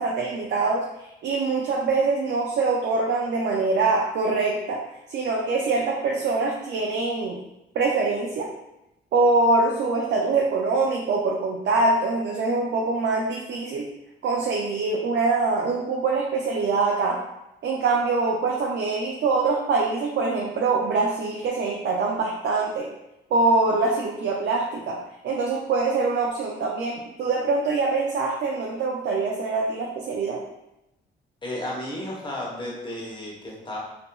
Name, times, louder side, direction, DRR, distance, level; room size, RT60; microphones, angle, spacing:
voice 1, 0.0-4.8 5.1-7.4 7.7-8.5 9.1-13.9 14.2-17.2 17.6-22.9 23.3-30.4, right 3 dB, 60° right, -1 dB, 0.4 m, -24 dB
voice 2, 31.4-33.8, left 1 dB, 25° left, -4 dB, 0.9 m, -33 dB
2.7 x 2.5 x 2.2 m, 0.90 s
cardioid pair, 90°, 20 cm